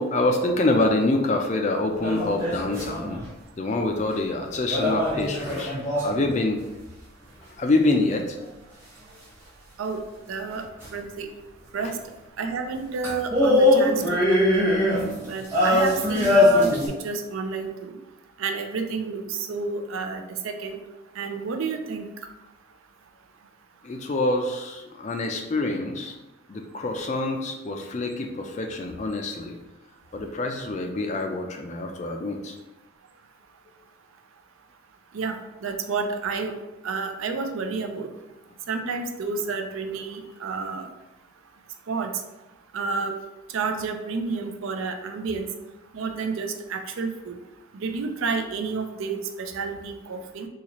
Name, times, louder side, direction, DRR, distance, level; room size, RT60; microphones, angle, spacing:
voice 1, 0.0-3.2 3.6-5.7 6.0-6.6 7.6-8.4 11.8-11.9 23.8-26.1 26.5-29.6 30.1-32.5, left 2 dB, 35° left, 3 dB, 0.3 m, -26 dB
sound 1, 2.0-3.2 4.7-6.3 10.8-10.9 13.0-16.9, left 1 dB, 15° right, 1.0 m, -21 dB
voice 2, 10.3-10.7 10.9-11.3 11.7-11.9 12.4-14.0 14.3-14.7 15.3-16.8 17.0-17.9 18.4-19.2 19.5-20.8 21.2-22.1 35.1-35.4 35.6-36.5 36.8-38.1 38.7-40.8 41.9-42.1 42.7-43.1 43.5-45.5 45.9-47.3 47.8-50.5, right 4 dB, 75° right, 6 dB, 0.4 m, -30 dB
4.0 x 2.4 x 3.0 m, 1.0 s
head